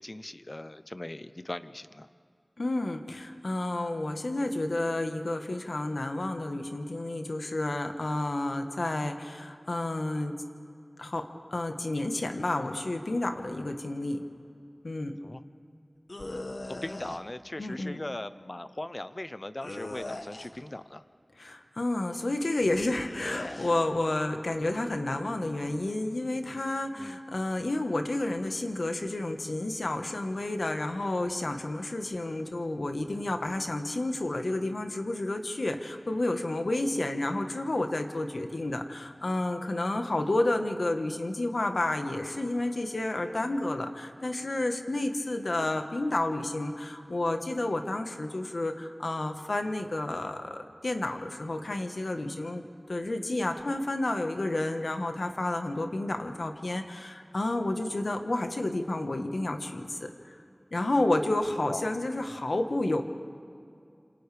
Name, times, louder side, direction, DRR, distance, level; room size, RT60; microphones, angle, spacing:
voice 1, 0.0-2.1 15.2-15.4 16.7-21.0 27.0-27.2 61.7-61.9, left 1 dB, 45° left, 12 dB, 0.7 m, -39 dB
voice 2, 2.6-10.3 11.0-14.2 14.8-15.2 17.6-18.0 21.4-60.3 60.7-63.0, left 2 dB, 90° left, 5 dB, 1.3 m, -30 dB
sound 1, 16.1-17.2 19.6-20.6 23.0-23.7, left 2 dB, 65° left, 1.1 m, -39 dB
28.5 x 27.0 x 3.4 m, 2.4 s
wide cardioid pair, 55°, 0 cm